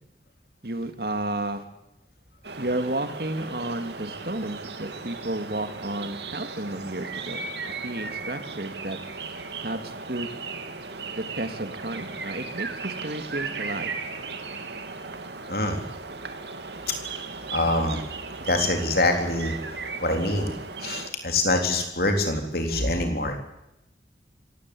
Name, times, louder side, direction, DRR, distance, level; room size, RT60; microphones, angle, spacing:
voice 1, 0.6-1.6 2.6-7.4 7.8-9.0 9.6-10.3 11.1-13.9, right 1 dB, 60° right, 8 dB, 2.3 m, -32 dB
sound 1, 2.4-21.1, right 4 dB, 75° right, 2.3 m, -36 dB
voice 2, 15.5-15.8 17.5-18.0 18.4-19.5 20.0-20.5 20.8-23.4, left 2 dB, 60° left, 4 dB, 3.7 m, -25 dB
26.0 x 16.0 x 8.6 m, 0.89 s
head